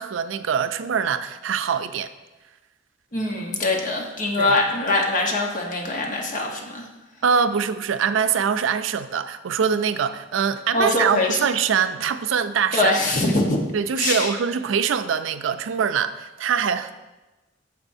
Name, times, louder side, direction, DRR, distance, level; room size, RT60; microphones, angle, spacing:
voice 1, 0.0-2.1 4.4-4.6 7.2-12.9 13.7-17.0, right 7 dB, 85° right, 11 dB, 0.4 m, -23 dB
voice 2, 3.1-6.9 10.7-11.4 12.7-13.6 14.0-14.3, left 2 dB, 45° left, 0 dB, 1.1 m, -23 dB
9.5 x 7.0 x 2.7 m, 1.1 s
head